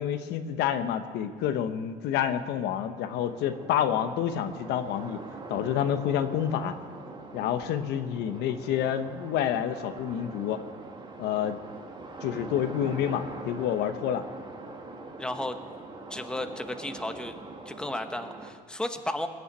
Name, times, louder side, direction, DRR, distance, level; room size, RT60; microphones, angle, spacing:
voice 1, 0.0-5.2 5.5-6.7 7.3-10.6 11.2-11.6 12.2-14.2, left 9 dB, 85° left, 9 dB, 1.0 m, -28 dB
sound 1, 3.1-18.5, right 3 dB, 25° right, 1.7 m, -43 dB
voice 2, 15.2-15.6 16.1-17.4 17.7-19.3, left 1 dB, 5° left, 7 dB, 1.0 m, -33 dB
20.0 x 7.1 x 9.5 m, 2.1 s
cardioid pair, 110°, 17 cm